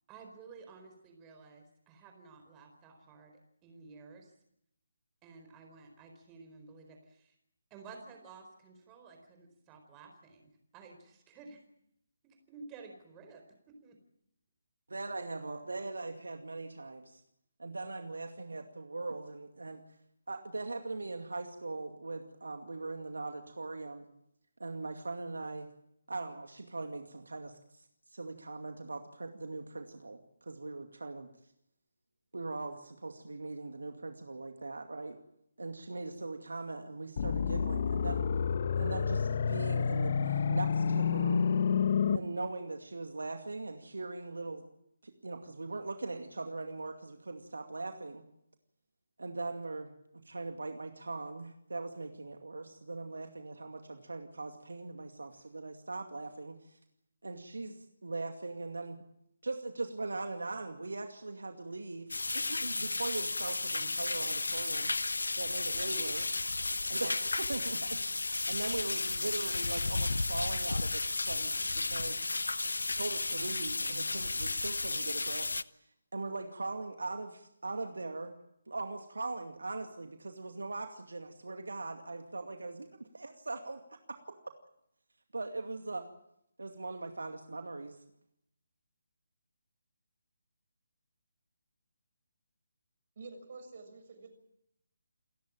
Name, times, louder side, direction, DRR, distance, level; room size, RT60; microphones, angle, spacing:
voice 1, 0.1-4.3 5.2-7.3 7.7-11.6 12.2-13.4 13.8-14.0, right 4 dB, 20° right, 4 dB, 4.4 m, -53 dB
voice 2, 14.9-17.2 17.6-19.8 20.3-24.1 24.6-25.7 26.1-31.3 32.3-35.2 35.6-38.3 38.8-41.4 42.1-44.6 45.0-48.2 49.2-49.9 50.2-56.8 57.2-59.0 59.4-64.9 65.3-66.6 66.9-72.3 72.9-75.5 75.7-78.3 78.7-84.4 85.3-86.1 86.6-88.0, right 3 dB, 70° right, 6 dB, 2.3 m, -40 dB
sound 1, 37.2-42.2, left 6 dB, 45° left, 1.2 m, -29 dB
sound 2, 62.1-75.6, left 3 dB, 70° left, 0.8 m, -33 dB
voice 3, 93.2-94.3, right 3 dB, 50° right, 7 dB, 6.9 m, -48 dB
28.5 x 15.0 x 8.8 m, 0.77 s
figure-of-eight pair, 145°, 0 cm